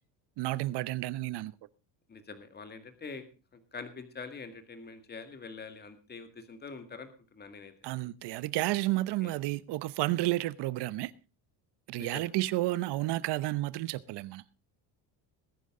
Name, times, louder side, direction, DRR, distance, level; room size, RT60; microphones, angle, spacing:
voice 1, 0.4-1.5 7.8-11.1 11.9-14.4, right 17 dB, 65° right, 0.9 m, -31 dB
voice 2, 2.1-3.2 3.5-7.7 9.2-9.3 12.0-12.3, left 4 dB, 20° left, 2.0 m, -45 dB
20.0 x 9.8 x 3.7 m
cardioid pair, 145°, 44 cm